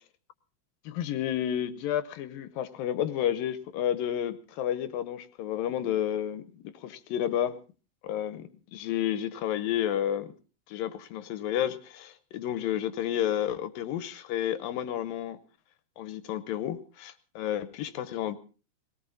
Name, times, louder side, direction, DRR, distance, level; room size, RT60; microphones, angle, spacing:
voice 1, 0.9-7.6 8.0-10.3 10.7-15.4 16.0-18.4, left 10 dB, 75° left, 13 dB, 2.6 m, -31 dB
20.5 x 18.5 x 3.9 m, 0.36 s
omnidirectional pair, 4.3 m